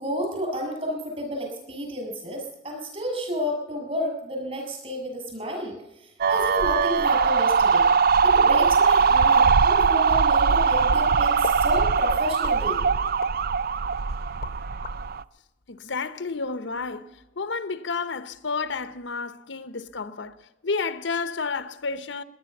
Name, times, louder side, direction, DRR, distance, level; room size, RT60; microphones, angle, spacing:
voice 1, 0.0-7.9 8.2-12.8, equal, 35° right, 7.2 m, -31 dB
sound 1, 6.2-15.2, right 5 dB, 55° right, 0.5 m, -21 dB
sound 2, 10.3-11.0 11.4-11.7 12.4-13.4 13.9-15.0, left 4 dB, 50° left, 0.9 m, -37 dB
voice 2, 15.7-17.1 17.4-20.4 20.6-22.2, left 4 dB, 80° left, 0.9 m, -30 dB
19.0 x 10.5 x 7.2 m
head